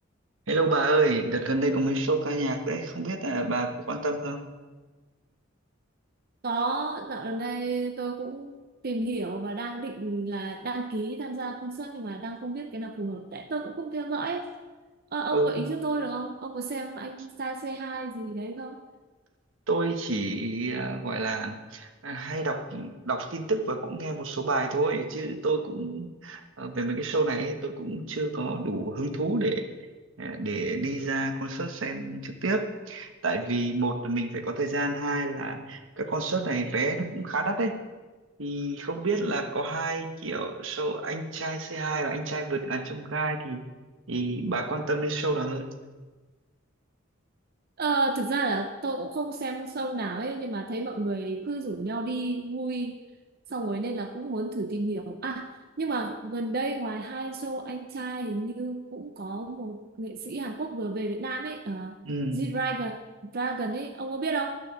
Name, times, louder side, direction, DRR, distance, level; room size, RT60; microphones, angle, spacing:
voice 1, 0.5-4.4 15.3-15.7 19.7-29.6 30.2-37.8 38.4-43.6 44.1-45.7 62.0-62.4, right 2 dB, 80° right, 6 dB, 1.2 m, -29 dB
voice 2, 6.4-8.5 8.8-14.5 15.1-18.8 47.8-53.0 53.5-62.0 62.3-64.6, right 3 dB, 50° right, 5 dB, 0.7 m, -32 dB
12.0 x 6.6 x 7.3 m, 1.3 s
head